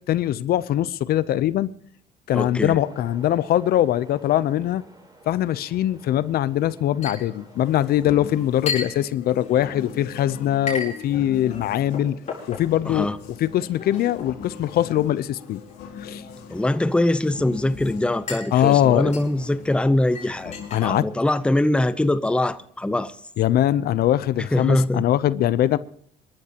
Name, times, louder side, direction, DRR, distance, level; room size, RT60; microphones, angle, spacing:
voice 1, 0.1-1.7 2.3-4.8 5.3-12.2 12.5-13.1 13.4-15.6 16.0-16.2 18.5-19.1 20.7-21.1 23.4-25.8, left 12 dB, 65° left, 17 dB, 0.7 m, -22 dB
voice 2, 2.3-2.8 12.9-13.2 16.5-23.2 24.4-25.0, left 1 dB, 5° left, 13 dB, 0.7 m, -22 dB
sound 1, 2.6-7.9, right 2 dB, 20° right, 5.5 m, -50 dB
Chink clink, 7.0-22.1, left 5 dB, 45° left, 5.9 m, -38 dB
sound 2, 7.6-20.9, left 6 dB, 80° left, 3.9 m, -42 dB
26.0 x 13.5 x 2.9 m, 0.63 s
cardioid pair, 110°, 17 cm